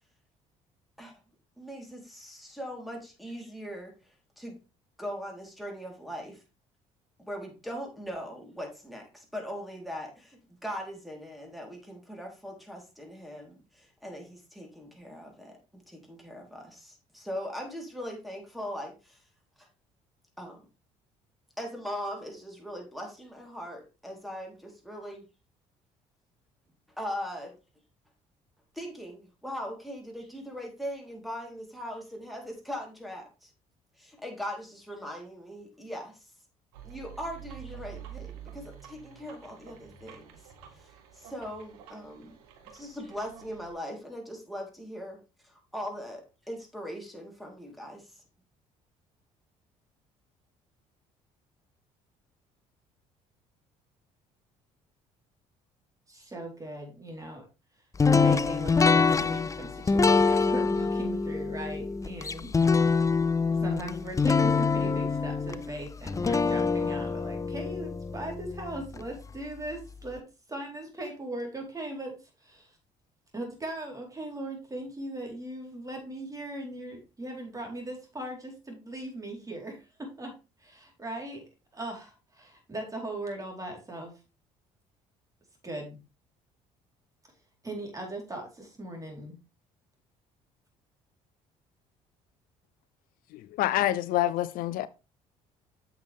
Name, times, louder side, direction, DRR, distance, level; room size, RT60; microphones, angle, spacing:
voice 1, 1.6-3.9 4.4-4.6 5.0-6.4 7.3-19.2 19.6-19.7 20.4-20.6 21.6-25.3 27.0-27.5 28.7-33.5 34.0-36.3 36.8-40.3 40.7-42.3 42.7-45.2 45.4-48.2, equal, ahead, 3.8 m, -40 dB
sound 1, 36.7-43.7, right 10 dB, 90° right, 1.7 m, -48 dB
voice 2, 56.1-57.4 58.1-63.0 63.5-72.8 73.3-80.3 80.6-81.4 81.7-84.1 85.6-86.0 87.6-89.4, right 1 dB, 20° right, 4.2 m, -39 dB
sound 2, 58.0-69.0, left 4 dB, 20° left, 0.5 m, -25 dB
voice 3, 93.3-94.9, left 14 dB, 70° left, 0.5 m, -27 dB
8.2 x 6.8 x 3.6 m
supercardioid pair, 70°, 15 cm